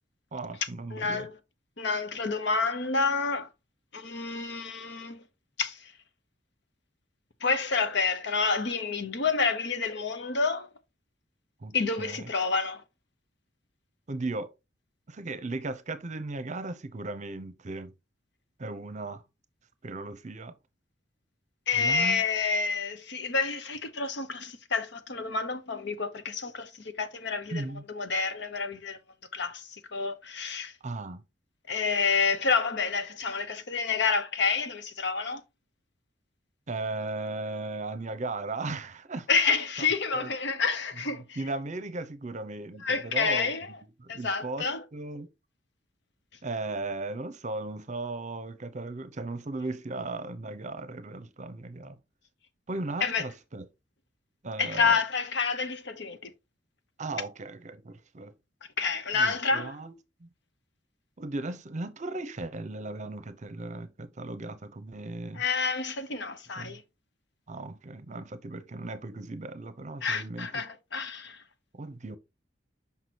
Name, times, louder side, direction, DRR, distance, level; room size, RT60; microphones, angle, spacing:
voice 1, 0.3-1.3 11.6-12.3 14.1-14.5 15.1-17.9 18.6-19.2 19.8-20.6 21.8-22.3 27.5-27.8 30.8-31.2 36.7-39.3 39.8-39.9 40.1-40.3 41.4-43.5 44.0-45.3 46.4-52.0 52.7-53.7 54.4-55.0 57.0-58.3 59.1-60.0 60.2-60.3 61.2-65.4 66.6-66.8 67.5-70.5 71.7-72.2, right 2 dB, 40° right, 0.7 m, -36 dB
voice 2, 0.9-1.3 1.8-3.5 3.9-5.2 5.6-5.9 7.4-10.7 11.7-12.8 21.7-29.0 29.3-30.7 31.7-35.4 39.3-41.4 42.8-43.7 44.1-44.8 53.0-53.3 54.6-56.3 58.8-59.8 65.3-66.8 70.0-71.4, left 4 dB, 65° left, 0.9 m, -29 dB
6.0 x 5.7 x 2.9 m
head